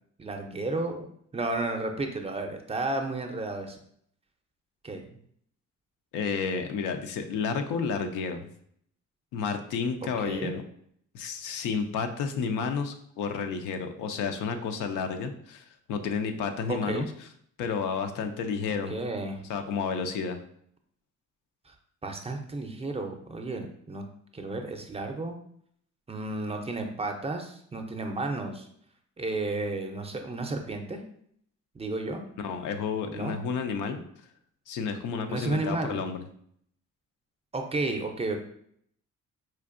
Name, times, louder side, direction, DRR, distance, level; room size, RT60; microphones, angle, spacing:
voice 1, 0.2-1.1 1.3-3.8 4.8-5.2 10.2-10.5 16.7-17.1 18.9-19.4 21.7-21.8 22.0-24.1 24.3-25.4 26.1-28.7 29.2-31.0 31.7-32.2 33.1-33.4 35.3-36.0 37.5-38.4, right 2 dB, 20° right, 4 dB, 0.5 m, -32 dB
voice 2, 6.1-8.5 9.3-10.6 11.1-17.1 17.6-19.0 19.5-20.4 32.4-34.0 34.7-36.2, left 5 dB, 85° left, 6 dB, 0.5 m, -31 dB
4.4 x 2.6 x 2.5 m, 0.67 s
cardioid pair, 90°, 30 cm